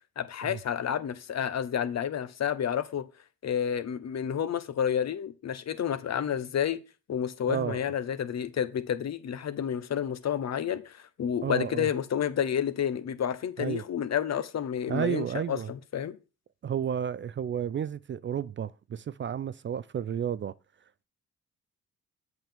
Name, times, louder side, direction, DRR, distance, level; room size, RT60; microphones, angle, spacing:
voice 1, 0.2-3.0 3.4-6.8 7.1-16.2, left 8 dB, 50° left, 1.0 m, -30 dB
voice 2, 7.5-7.8 11.4-11.9 13.6-13.8 14.9-15.7 16.6-20.5, right 8 dB, 35° right, 0.4 m, -32 dB
7.9 x 5.9 x 3.5 m
supercardioid pair, 55°, 34 cm